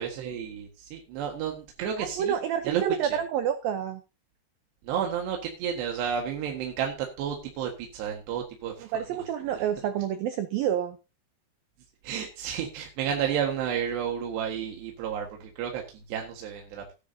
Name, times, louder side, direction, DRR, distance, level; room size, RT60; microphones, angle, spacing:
voice 1, 0.0-2.3 2.6-2.8 3.1-3.2 4.9-8.9 12.0-15.8 16.1-16.8, right 8 dB, 70° right, 1 dB, 3.6 m, -31 dB
voice 2, 2.0-4.0 8.8-11.0, right 9 dB, 90° right, 9 dB, 2.0 m, -28 dB
17.5 x 10.0 x 2.8 m, 0.31 s
omnidirectional pair, 5.4 m